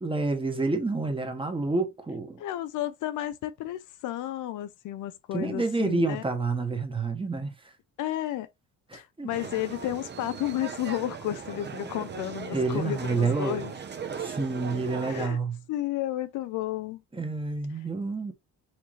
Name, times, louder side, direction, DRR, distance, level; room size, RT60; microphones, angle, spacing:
voice 1, 0.0-2.4 5.3-7.5 8.9-9.3 12.5-13.6 14.2-15.6 17.1-18.3, right 3 dB, 15° right, 1.2 m, -28 dB
voice 2, 2.4-6.2 8.0-8.5 8.9-13.7 15.0-15.4 15.7-17.0, left 13 dB, 85° left, 0.7 m, -32 dB
sound 1, 9.3-15.3, right 6 dB, 35° right, 0.9 m, -38 dB
6.0 x 2.7 x 3.1 m
cardioid pair, 90°, 30 cm